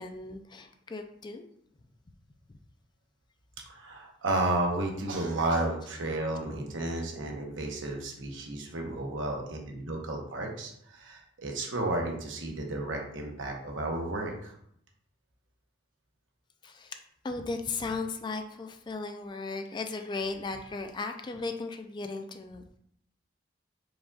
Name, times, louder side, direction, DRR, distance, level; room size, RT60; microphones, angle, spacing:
voice 1, 0.0-1.5 2.5-2.6 16.6-17.0 17.2-22.8, left 3 dB, 25° left, 6 dB, 0.3 m, -36 dB
voice 2, 3.7-14.5, right 2 dB, 85° right, 1 dB, 0.9 m, -32 dB
4.8 x 3.9 x 2.4 m, 0.70 s
head